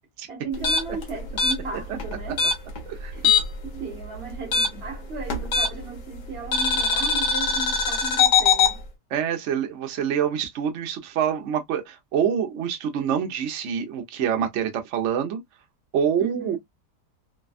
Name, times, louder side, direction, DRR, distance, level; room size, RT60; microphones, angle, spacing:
voice 1, 0.3-2.5 3.1-3.2 3.7-8.8 16.2-16.6, right 3 dB, 40° right, 1.2 m, -36 dB
sound 1, 0.5-3.7 3.9-6.0 6.5-8.7, left 5 dB, 75° left, 1.6 m, -22 dB
voice 2, 9.1-15.4 15.9-16.6, right 8 dB, 60° right, 0.8 m, -26 dB
3.3 x 2.2 x 2.3 m
omnidirectional pair, 1.8 m